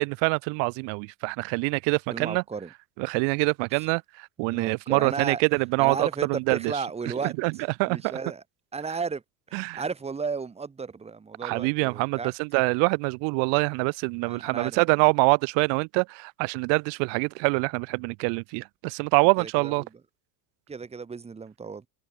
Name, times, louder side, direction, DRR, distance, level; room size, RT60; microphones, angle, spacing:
voice 1, 0.0-2.4 3.0-6.7 7.2-7.5 7.8-8.2 9.5-9.8 11.4-19.8, right 36 dB, 75° right, 3.3 m, -25 dB
voice 2, 2.1-2.7 4.5-5.4 5.8-7.3 7.8-8.4 8.7-9.2 9.5-12.3 14.3-14.8 19.4-19.7 20.7-21.9, right 5 dB, 15° right, 4.6 m, -34 dB
cardioid pair, 180°, 43 cm